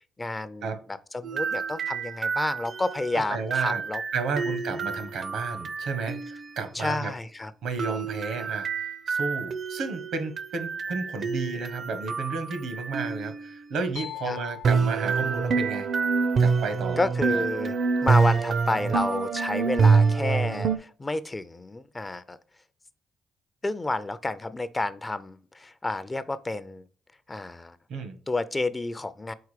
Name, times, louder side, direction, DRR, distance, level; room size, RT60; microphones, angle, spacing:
voice 1, 0.2-4.0 4.7-4.8 6.7-7.5 14.3-14.4 17.0-17.8 18.0-22.4 23.6-26.8 27.3-27.8 28.3-29.3, left 2 dB, 20° left, 0.4 m, -30 dB
sound 1, 1.2-6.5 7.8-13.6 14.6-20.8, right 5 dB, 55° right, 0.6 m, -27 dB
voice 2, 3.1-3.8 4.1-7.1 7.6-15.9 16.4-17.0 17.3-17.4 27.9-28.2, right 4 dB, 80° right, 1.2 m, -32 dB
sound 2, 14.0-17.6, left 11 dB, 80° left, 0.8 m, -44 dB
4.7 x 4.1 x 4.9 m
cardioid pair, 90°, 0 cm